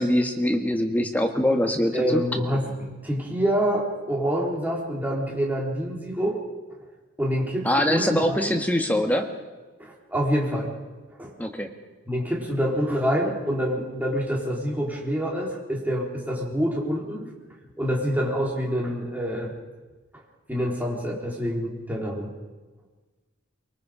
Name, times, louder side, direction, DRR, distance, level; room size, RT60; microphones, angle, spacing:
voice 1, 0.0-2.2 7.6-9.3 11.4-11.7, left 1 dB, 10° left, 4 dB, 1.7 m, -23 dB
voice 2, 1.9-2.7 3.0-6.4 7.2-8.5 9.8-10.7 11.2-11.3 12.1-17.3 17.8-19.5 20.5-22.3, equal, 10° right, -2 dB, 3.9 m, -26 dB
24.0 x 22.5 x 5.1 m, 1.3 s
head